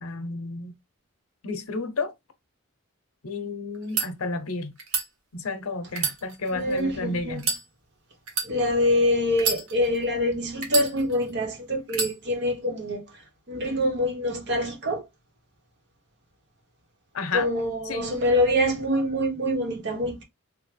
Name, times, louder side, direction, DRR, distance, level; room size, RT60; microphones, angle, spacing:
voice 1, 0.0-0.7 1.4-2.1 3.2-4.7 5.3-7.5 17.1-17.5 17.8-18.2, left 3 dB, 80° left, 0.7 m, -31 dB
sound 1, 3.7-4.1 4.8-5.1 5.9-6.8 7.4-7.6 8.3-8.5 9.3-10.0 10.6-11.3 11.9-12.1, right 4 dB, 75° right, 1.2 m, -28 dB
voice 2, 6.5-7.4 8.4-13.0 13.5-15.0 17.3-20.2, left 1 dB, 55° right, 1.0 m, -25 dB
3.5 x 2.1 x 3.2 m
head